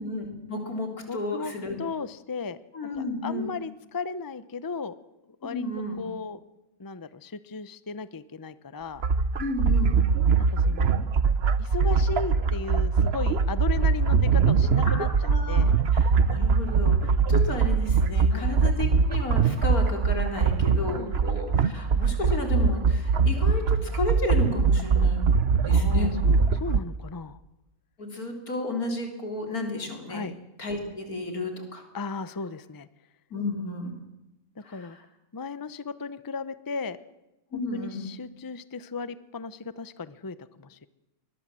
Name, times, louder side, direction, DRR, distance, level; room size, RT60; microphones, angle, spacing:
voice 1, 0.0-1.8 2.7-3.5 5.5-6.0 9.4-10.0 14.8-15.6 15.9-26.2 28.0-30.3 30.6-31.8 33.3-33.9 34.6-35.0 37.5-38.1, left 2 dB, 85° left, 3 dB, 4.2 m, -32 dB
voice 2, 1.1-1.5 1.8-2.6 3.0-4.9 5.4-5.6 6.0-6.4 6.8-9.0 10.4-11.0 11.6-15.1 15.5-15.7 18.3-18.5 20.9-21.2 25.7-27.4 30.1-30.3 31.9-32.9 34.6-35.0 35.3-37.0 37.5-40.9, left 4 dB, 20° left, 15 dB, 0.6 m, -36 dB
sound 1, 9.0-26.8, right 5 dB, 50° right, 1.1 m, -22 dB
23.0 x 20.5 x 7.6 m, 0.97 s
omnidirectional pair, 1.5 m